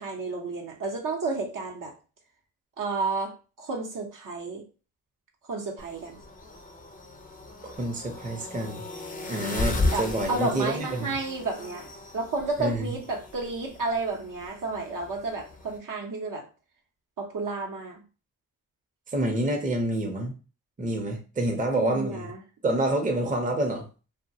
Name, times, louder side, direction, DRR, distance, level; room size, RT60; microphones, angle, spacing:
voice 1, 0.0-1.9 2.8-4.6 5.5-6.2 9.9-16.5 17.2-18.0 21.7-22.4, right 3 dB, 60° right, 0.7 m, -31 dB
sound 1, 5.8-15.8, left 2 dB, 25° left, 0.5 m, -35 dB
voice 2, 7.6-8.8 9.3-11.1 12.6-12.9 19.1-20.3 20.8-22.3 22.6-23.9, right 1 dB, 20° right, 0.6 m, -28 dB
2.2 x 2.1 x 2.6 m
cardioid pair, 55°, 37 cm